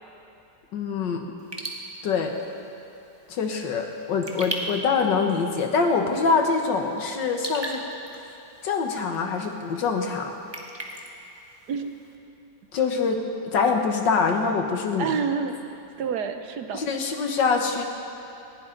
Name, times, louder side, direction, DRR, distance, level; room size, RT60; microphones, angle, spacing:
voice 1, 0.7-1.3 2.0-2.3 3.3-7.8 8.6-10.4 12.7-15.1 16.7-17.8, left 5 dB, 75° left, 4 dB, 1.9 m, -24 dB
Raindrop / Drip, 1.4-12.2, right 1 dB, 15° right, 1.2 m, -40 dB
voice 2, 11.7-12.0 15.0-16.8, right 6 dB, 70° right, 7 dB, 1.3 m, -29 dB
19.5 x 15.5 x 3.9 m, 2.9 s
omnidirectional pair, 2.0 m